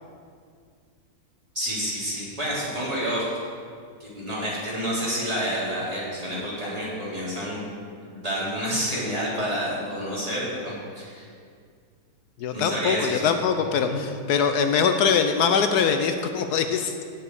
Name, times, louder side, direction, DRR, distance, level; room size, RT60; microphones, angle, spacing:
voice 1, 1.5-3.3 4.0-7.7 8.1-11.2 12.5-13.3 13.9-14.0, equal, 20° right, -8 dB, 3.8 m, -29 dB
voice 2, 12.4-16.9, left 6 dB, 75° left, 7 dB, 1.2 m, -22 dB
17.0 x 7.6 x 4.9 m, 2.1 s
omnidirectional pair, 1.7 m